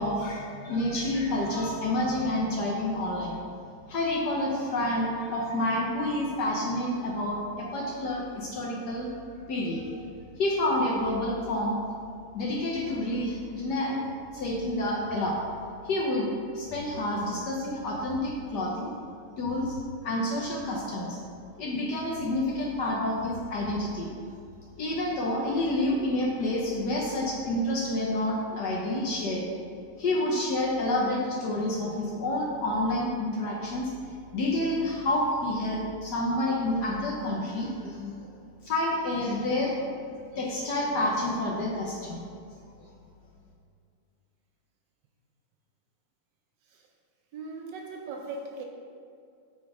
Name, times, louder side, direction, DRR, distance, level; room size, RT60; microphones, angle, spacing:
voice 1, 0.0-3.4 3.9-9.1 9.5-10.0 10.4-11.8 12.3-14.0 14.3-15.4 15.8-18.9 19.4-21.2 21.5-24.1 24.8-29.4 30.0-33.9 34.3-38.1 38.6-39.7 40.3-42.3, left 1 dB, 65° left, -3 dB, 1.0 m, -29 dB
voice 2, 47.3-48.6, right 3 dB, 75° right, 2 dB, 1.0 m, -38 dB
6.0 x 4.2 x 4.7 m, 2.4 s
omnidirectional pair, 2.4 m